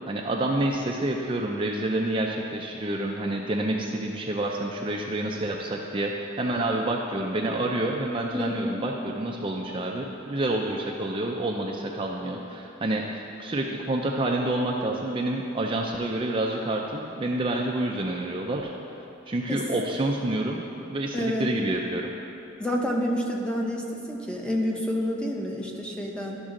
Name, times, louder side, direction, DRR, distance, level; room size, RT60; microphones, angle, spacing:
voice 1, 0.1-18.7 19.3-20.6 20.9-22.1, right 1 dB, 25° right, 0 dB, 0.4 m, -28 dB
voice 2, 8.3-8.8 19.5-19.6 21.1-21.5 22.6-26.4, equal, 5° left, -1 dB, 0.8 m, -28 dB
12.0 x 6.1 x 3.7 m, 2.8 s
head